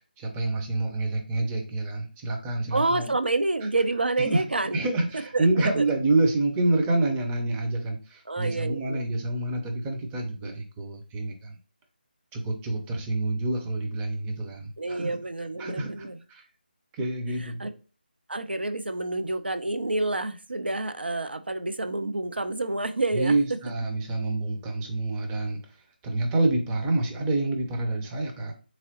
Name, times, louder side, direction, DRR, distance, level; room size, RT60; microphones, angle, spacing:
voice 1, 0.2-3.2 4.2-4.4 4.7-11.6 12.3-15.2 15.6-16.5 16.9-17.7 23.1-25.8 26.0-28.5, right 2 dB, 10° right, 0.5 m, -27 dB
voice 2, 2.7-4.8 5.3-5.8 8.3-9.0 10.4-10.5 14.8-16.2 17.4-17.7 18.3-23.3, right 2 dB, 80° right, 0.5 m, -28 dB
3.8 x 3.0 x 2.8 m
figure-of-eight pair, 155°, 6 cm